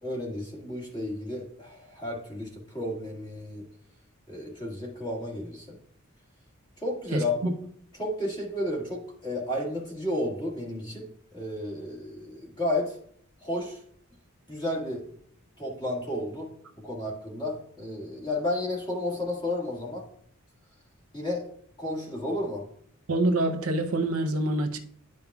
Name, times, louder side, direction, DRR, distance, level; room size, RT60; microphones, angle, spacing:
voice 1, 0.0-3.6 4.3-5.8 6.8-7.5 7.9-11.1 11.3-13.0 13.4-13.8 14.5-15.0 15.6-20.1 21.1-21.5 21.8-22.6, left 1 dB, 20° left, 1.9 m, -32 dB
voice 2, 7.1-7.5 23.1-24.8, right 2 dB, 85° right, 0.7 m, -26 dB
10.5 x 5.3 x 2.4 m
head